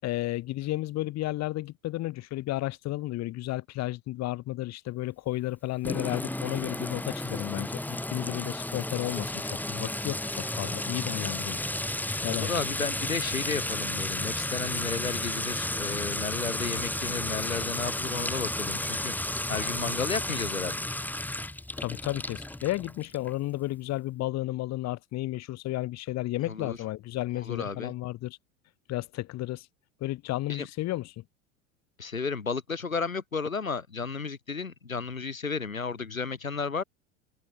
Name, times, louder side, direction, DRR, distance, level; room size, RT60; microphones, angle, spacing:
voice 1, 0.0-11.6 12.2-12.5 21.8-28.4 28.9-29.7 30.0-31.1, left 16 dB, 40° left, 6.0 m, -33 dB
Sink (filling or washing) / Trickle dribble / Fill (with liquid), 5.8-23.3, left 1 dB, 5° left, 2.7 m, -32 dB
voice 2, 12.3-19.1 19.5-20.8 26.5-26.8 27.3-27.9 30.5-30.7 32.0-36.8, left 5 dB, 80° left, 5.7 m, -33 dB
open air
figure-of-eight pair, 80°, 40 cm